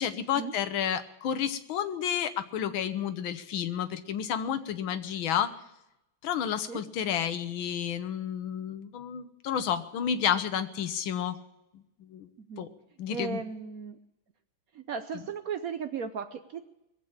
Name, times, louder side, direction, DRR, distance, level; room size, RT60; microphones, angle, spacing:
voice 1, 0.0-5.5 6.2-11.4 11.7-12.3 12.6-12.7 13.0-13.4, left 9 dB, 75° left, 10 dB, 1.7 m, -31 dB
voice 2, 13.1-14.0 14.7-16.6, right 6 dB, 65° right, 9 dB, 0.8 m, -36 dB
20.5 x 7.7 x 8.7 m, 0.87 s
omnidirectional pair, 2.2 m